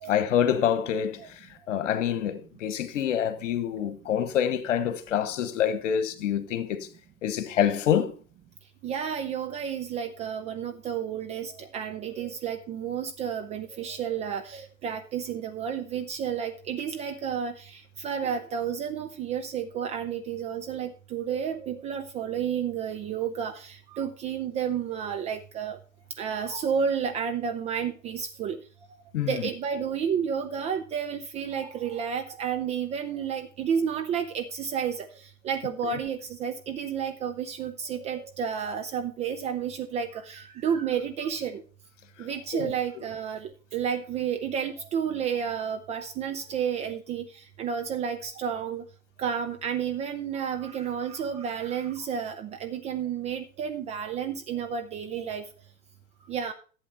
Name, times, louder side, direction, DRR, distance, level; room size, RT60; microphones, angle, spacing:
voice 1, 0.1-6.9 7.2-8.1 29.1-29.4 42.5-42.7, left 9 dB, 60° left, 1.4 m, -26 dB
voice 2, 8.8-25.8 26.2-28.6 29.2-35.1 35.4-41.6 42.2-47.2 47.6-48.8 49.2-55.4 56.3-56.5, right 7 dB, 15° right, 0.4 m, -31 dB
11.5 x 8.0 x 4.3 m
figure-of-eight pair, 95°, 43 cm